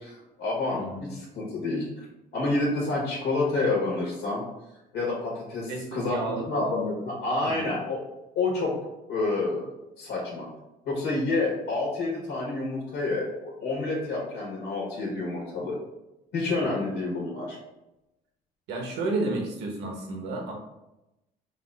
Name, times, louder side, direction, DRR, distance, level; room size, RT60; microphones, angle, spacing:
voice 1, 0.0-0.8 1.1-2.0 2.3-4.4 4.9-8.0 8.3-8.7 9.1-9.7 10.0-10.5 10.8-15.8 16.3-17.6, left 3 dB, 75° left, -4 dB, 1.4 m, -28 dB
voice 2, 5.7-6.8 7.4-7.7 16.6-16.9 18.7-20.5, right 2 dB, 85° right, 1 dB, 1.2 m, -32 dB
5.0 x 2.6 x 3.4 m, 0.93 s
cardioid pair, 110°, 17 cm